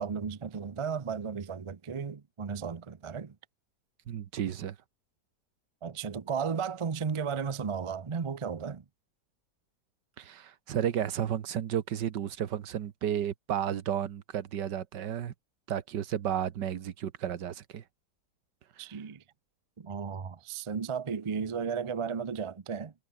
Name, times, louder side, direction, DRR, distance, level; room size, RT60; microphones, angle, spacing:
voice 1, 0.0-3.3 5.8-8.8 18.8-19.2 19.8-22.9, right 6 dB, 45° right, 0.3 m, -34 dB
voice 2, 4.1-4.8 10.2-15.3 15.7-17.8 18.8-18.9, right 10 dB, 85° right, 1.8 m, -32 dB
omnidirectional pair, 1.8 m